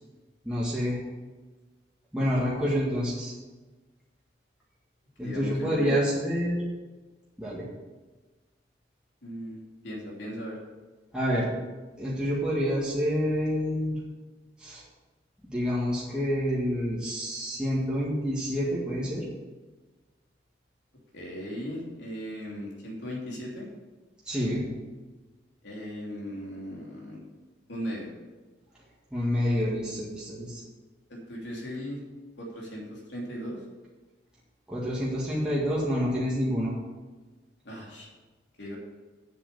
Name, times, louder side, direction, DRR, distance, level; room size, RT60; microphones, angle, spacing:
voice 1, 0.5-1.0 2.1-3.3 5.2-6.6 7.4-7.6 11.1-11.5 12.0-14.0 14.6-14.8 15.5-19.2 24.3-24.6 29.1-30.6 34.7-36.7, equal, 5° right, -8 dB, 1.9 m, -28 dB
voice 2, 5.2-6.0 9.2-9.6 9.8-10.6 21.1-23.7 25.6-27.2 27.7-28.1 31.1-32.0 32.4-33.6 37.6-38.1 38.6-38.8, equal, 75° left, -3 dB, 3.0 m, -37 dB
8.0 x 7.3 x 6.9 m, 1.3 s
head